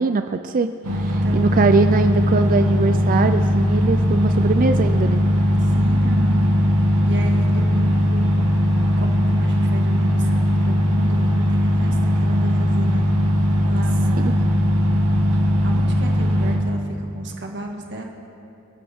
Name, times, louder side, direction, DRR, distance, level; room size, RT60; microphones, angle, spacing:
voice 1, 0.0-1.0 1.3-5.2 14.2-14.3, right 3 dB, 40° right, 8 dB, 0.4 m, -21 dB
sound 1, 0.8-16.6, equal, 85° right, 2.0 m, -19 dB
voice 2, 1.0-1.6 5.6-6.4 7.0-8.3 9.0-13.0 13.6-14.5 15.6-18.0, right 2 dB, 55° right, 1 dB, 1.8 m, -34 dB
27.5 x 11.0 x 3.6 m, 2.6 s
head